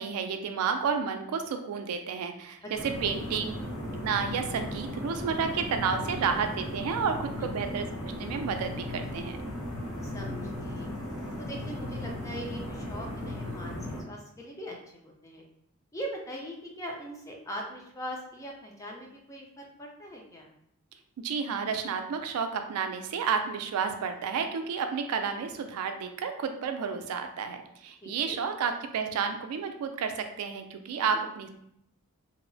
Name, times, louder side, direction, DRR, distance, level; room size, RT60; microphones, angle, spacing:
voice 1, 0.0-3.6 4.0-9.4 21.2-31.5, right 6 dB, 80° right, 7 dB, 0.3 m, -31 dB
sound 1, 2.7-14.0, left 1 dB, 75° left, 0.8 m, -36 dB
voice 2, 10.0-10.9 11.4-13.8 14.1-15.4 15.9-20.5 28.0-28.4 30.9-31.2, equal, 15° left, 0 dB, 0.4 m, -41 dB
2.8 x 2.0 x 2.6 m, 0.74 s
head